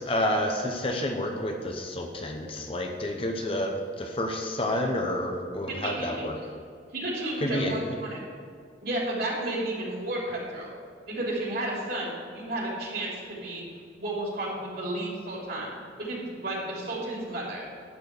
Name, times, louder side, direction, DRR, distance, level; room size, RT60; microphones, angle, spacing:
voice 1, 0.0-6.4 7.4-8.0, left 1 dB, 30° left, 3 dB, 0.8 m, -29 dB
voice 2, 5.7-6.5 6.9-8.2 8.8-10.7 11.1-13.6 14.0-15.7 16.0-17.6, right 1 dB, 55° right, -4 dB, 3.0 m, -32 dB
12.0 x 4.5 x 7.9 m, 2.2 s
head